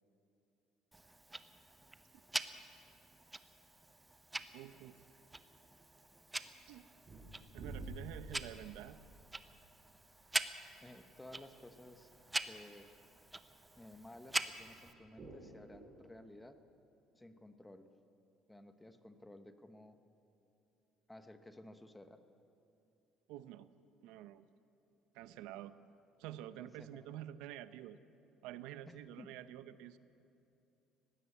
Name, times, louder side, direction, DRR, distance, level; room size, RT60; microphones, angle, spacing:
Tick-tock, 0.9-14.9, right 2 dB, 10° right, 0.7 m, -45 dB
voice 1, 4.5-5.0 6.6-6.8 7.5-9.0 23.3-23.7 24.0-24.4 25.1-25.7 26.2-28.0 28.4-30.0, right 12 dB, 90° right, 13 dB, 0.7 m, -48 dB
sound 1, 6.6-6.7 7.1-11.0 11.3-11.4 11.7-11.8 12.1-12.4 12.8-12.9 13.1-16.1, right 2 dB, 25° right, 4.2 m, -52 dB
voice 2, 10.8-12.1 12.5-12.9 13.7-16.6 17.1-17.9 18.5-20.0 21.1-22.2 26.6-27.2 28.9-29.3, left 1 dB, 5° left, 9 dB, 1.0 m, -55 dB
19.0 x 16.0 x 8.4 m, 2.8 s
cardioid pair, 145°, 0 cm